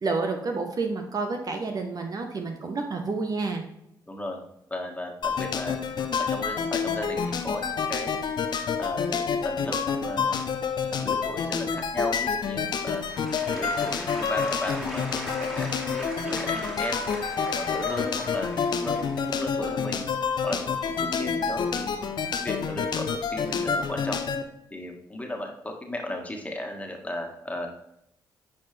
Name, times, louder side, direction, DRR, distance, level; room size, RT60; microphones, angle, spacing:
voice 1, 0.0-3.6, right 3 dB, 45° right, 4 dB, 1.2 m, -29 dB
voice 2, 4.1-4.4 4.7-5.7 6.3-8.1 8.8-9.8 10.0-10.6 11.0-13.0 13.5-17.1 17.5-18.5 18.8-20.0 20.4-21.9 22.4-24.2 24.7-27.7, left 1 dB, 15° left, 1 dB, 1.9 m, -35 dB
sound 1, 5.2-24.4, left 6 dB, 60° left, 0.8 m, -28 dB
Applause / Crowd, 12.5-21.4 22.0-22.1, equal, 5° right, 2.5 m, -40 dB
10.0 x 4.7 x 3.5 m, 0.80 s
supercardioid pair, 50°, 9 cm